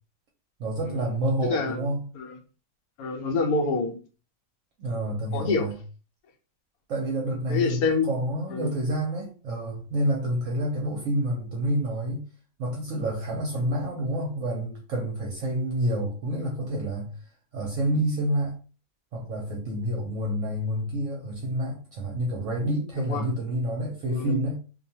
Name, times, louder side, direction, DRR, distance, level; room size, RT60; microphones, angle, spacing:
voice 1, 0.6-2.0 4.8-5.8 6.9-12.2 12.6-17.1 17.5-18.5 19.1-24.6, right 1 dB, 65° right, 0.9 m, -28 dB
voice 2, 1.4-1.8 2.2-2.3 3.0-4.0 5.3-5.7 7.5-8.1 8.5-8.7 16.4-16.5 23.1-23.2 24.1-24.4, left 4 dB, 75° left, 1.1 m, -26 dB
2.6 x 2.2 x 2.7 m
omnidirectional pair, 1.7 m